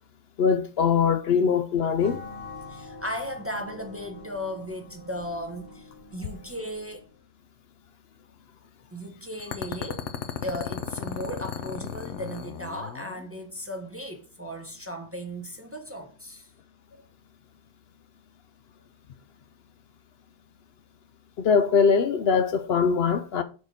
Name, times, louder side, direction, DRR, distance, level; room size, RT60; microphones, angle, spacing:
voice 1, 0.4-2.2 21.4-23.4, left 6 dB, 65° left, 0.8 m, -22 dB
sound 1, 2.0-7.1, left 3 dB, 65° right, 2.2 m, -44 dB
voice 2, 2.7-7.1 8.9-10.1 10.4-16.5, equal, 15° right, 0.8 m, -36 dB
sound 2, 9.4-13.2, left 8 dB, 90° left, 1.1 m, -35 dB
6.4 x 4.8 x 4.1 m
omnidirectional pair, 1.2 m